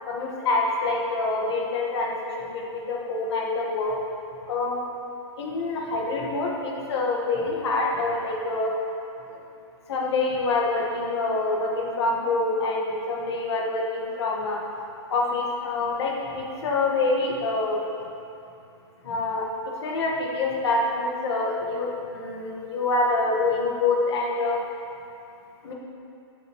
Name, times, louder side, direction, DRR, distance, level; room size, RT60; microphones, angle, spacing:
voice 1, 0.1-3.9 4.5-4.8 5.4-8.7 9.3-9.4 9.9-14.6 15.1-17.8 19.0-19.4 19.8-24.6 25.6-25.7, left 3 dB, 60° left, -2 dB, 1.7 m, -26 dB
11.5 x 6.8 x 3.2 m, 2.7 s
hypercardioid pair, 155°, 15 cm